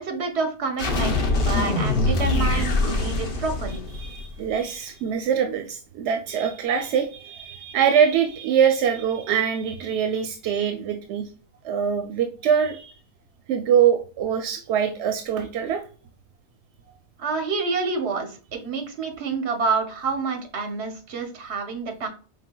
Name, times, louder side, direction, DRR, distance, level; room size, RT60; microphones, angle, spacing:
voice 1, 0.0-3.8 17.2-22.1, right 4 dB, 70° right, 5 dB, 1.1 m, -28 dB
sound 1, 0.8-4.5, left 2 dB, 55° left, 1.0 m, -23 dB
voice 2, 4.0-11.3 11.6-12.9 13.5-15.8, right 8 dB, 90° right, 6 dB, 0.9 m, -23 dB
4.9 x 3.4 x 2.2 m, 0.37 s
omnidirectional pair, 1.1 m